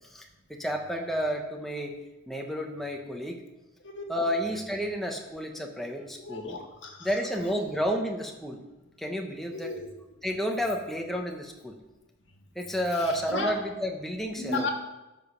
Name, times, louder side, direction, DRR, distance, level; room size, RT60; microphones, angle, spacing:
voice 1, 0.1-1.9 2.3-3.4 4.1-6.6 7.0-8.6 9.0-9.7 10.2-11.8 12.5-14.7, equal, ahead, 1 dB, 1.1 m, -31 dB
voice 2, 3.8-4.4 6.3-7.1 9.5-9.9 13.3-13.5 14.4-14.7, left 2 dB, 75° left, 2 dB, 1.9 m, -33 dB
12.5 x 5.2 x 6.6 m, 1.0 s
head